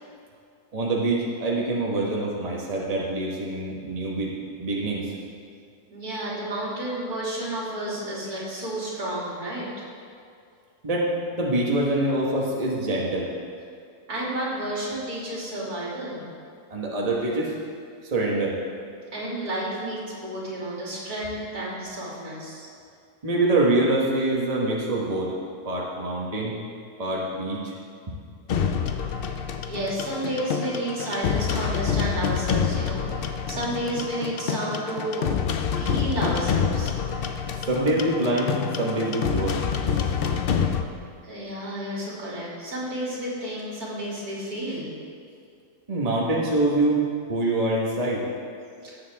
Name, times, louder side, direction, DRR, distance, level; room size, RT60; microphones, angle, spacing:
voice 1, 0.7-4.3 4.6-5.1 10.8-13.3 16.7-17.5 18.0-18.6 23.2-25.3 25.6-26.6 27.0-27.7 28.1-28.2 37.7-39.6 39.9-40.1 45.9-47.0 47.3-48.2, right 2 dB, 25° right, -4 dB, 1.4 m, -25 dB
voice 2, 5.9-9.7 14.1-16.2 19.1-22.7 29.7-35.3 35.8-36.9 41.2-45.0 48.8-48.9, right 1 dB, 70° right, -6 dB, 3.2 m, -31 dB
sound 1, 28.5-40.8, left 7 dB, 75° left, 0.5 m, -27 dB
18.5 x 7.5 x 3.6 m, 2.3 s
omnidirectional pair, 1.7 m